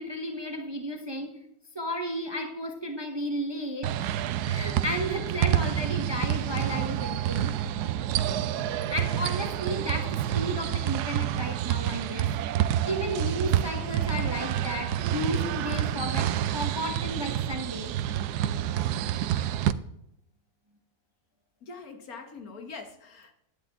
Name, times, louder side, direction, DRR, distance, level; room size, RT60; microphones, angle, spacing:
voice 1, 0.0-1.3 1.7-7.6 8.9-17.9, equal, 20° right, 3 dB, 0.9 m, -33 dB
sound 1, 3.8-19.7, right 11 dB, 85° right, 1.1 m, -28 dB
voice 2, 21.6-23.3, left 4 dB, 65° left, 5 dB, 1.7 m, -43 dB
10.5 x 10.0 x 3.6 m, 0.81 s
omnidirectional pair, 1.7 m